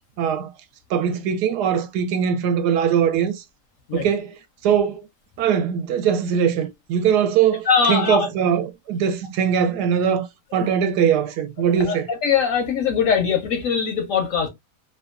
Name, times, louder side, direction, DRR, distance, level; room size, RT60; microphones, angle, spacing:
voice 1, 0.2-0.5 0.9-3.4 3.9-4.3 4.6-5.0 5.4-10.3 10.5-12.1, right 8 dB, 75° right, 1.1 m, -21 dB
voice 2, 7.7-8.3 10.6-10.7 11.6-14.5, left 6 dB, 65° left, 0.8 m, -21 dB
2.8 x 2.2 x 2.3 m
omnidirectional pair, 1.8 m